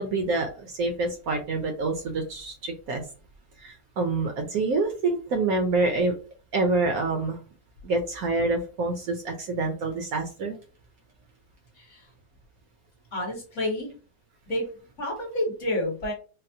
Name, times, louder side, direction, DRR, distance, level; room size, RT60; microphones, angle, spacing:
voice 1, 0.0-3.0 3.6-6.1 6.5-7.4 7.8-10.6, right 3 dB, 70° right, 4 dB, 0.9 m, -27 dB
voice 2, 11.7-12.1 13.1-13.9 14.5-14.6 15.0-16.1, left 1 dB, 50° left, -1 dB, 1.2 m, -29 dB
4.0 x 2.0 x 2.6 m, 0.36 s
omnidirectional pair, 1.9 m